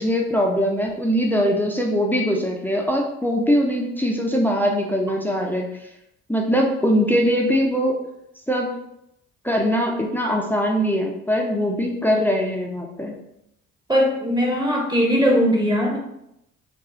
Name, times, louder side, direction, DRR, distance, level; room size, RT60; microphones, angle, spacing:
voice 1, 0.0-5.7 6.3-8.0 8.5-8.7 9.4-13.1, equal, 5° left, 0 dB, 0.5 m, -21 dB
voice 2, 13.9-16.0, equal, 10° right, -1 dB, 0.9 m, -19 dB
2.8 x 2.3 x 2.6 m, 0.80 s
hypercardioid pair, 45°, 37 cm